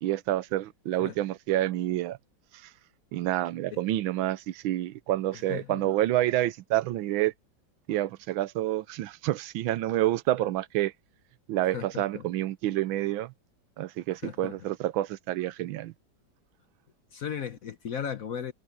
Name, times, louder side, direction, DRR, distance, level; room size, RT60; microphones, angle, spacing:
voice 1, 0.0-2.2 3.1-7.3 7.9-10.9 11.5-13.3 13.8-15.9, right 14 dB, 85° right, 1.4 m, -28 dB
voice 2, 5.3-5.9 11.7-12.3 14.2-14.6 17.1-18.5, left 8 dB, 55° left, 1.1 m, -36 dB
omnidirectional pair, 2.1 m